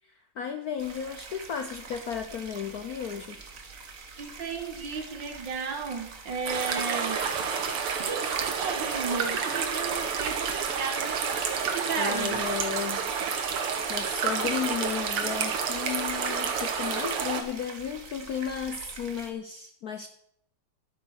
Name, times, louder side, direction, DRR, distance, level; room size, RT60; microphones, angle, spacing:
voice 1, 0.4-3.4 12.0-13.0 13.6-20.1, left 7 dB, 65° left, 7 dB, 1.0 m, -34 dB
sound 1, 0.8-19.3, right 4 dB, 40° right, 1.6 m, -45 dB
voice 2, 4.2-7.2 7.5-12.5, right 5 dB, 60° right, 6 dB, 2.1 m, -35 dB
sound 2, 6.4-17.4, right 6 dB, 85° right, 2.3 m, -29 dB
11.0 x 8.0 x 6.4 m, 0.71 s
omnidirectional pair, 2.4 m